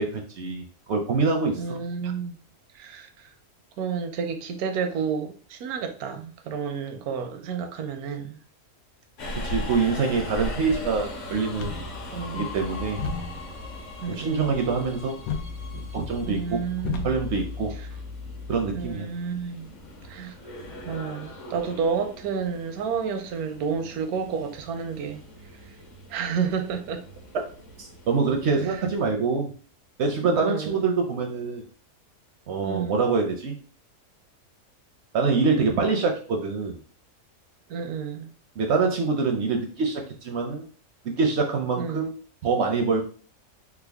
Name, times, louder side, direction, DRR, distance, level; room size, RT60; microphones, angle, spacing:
voice 1, 0.0-1.8 9.4-11.8 12.3-13.0 14.1-15.2 15.7-16.6 17.0-17.7 18.5-19.1 27.8-29.5 30.0-31.6 32.5-33.6 35.1-36.7 38.6-40.6 41.0-42.2 42.4-43.0, right 4 dB, 65° right, 0.7 m, -25 dB
voice 2, 1.6-2.4 2.7-3.3 3.8-8.4 12.1-12.5 14.0-14.5 16.3-17.1 18.7-19.7 20.1-20.3 20.8-25.2 26.1-27.0 28.7-28.8 30.4-30.9 32.6-33.0 37.7-38.3 41.8-42.1, right 6 dB, 85° right, 1.1 m, -30 dB
Subway metro underground, 9.2-29.1, left 1 dB, 60° left, 1.2 m, -40 dB
sound 1, 11.5-18.9, left 4 dB, 85° left, 1.1 m, -36 dB
3.5 x 2.0 x 3.4 m
omnidirectional pair, 1.5 m